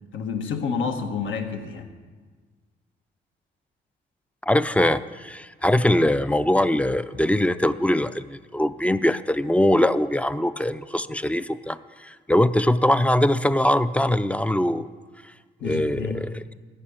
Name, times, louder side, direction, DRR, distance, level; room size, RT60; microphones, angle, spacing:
voice 1, 0.1-1.9 15.6-16.2, left 5 dB, 75° left, 5 dB, 1.5 m, -29 dB
voice 2, 4.4-14.9 15.6-16.4, left 1 dB, 5° left, 14 dB, 0.4 m, -22 dB
14.5 x 5.7 x 8.7 m, 1.4 s
cardioid pair, 90°, 20 cm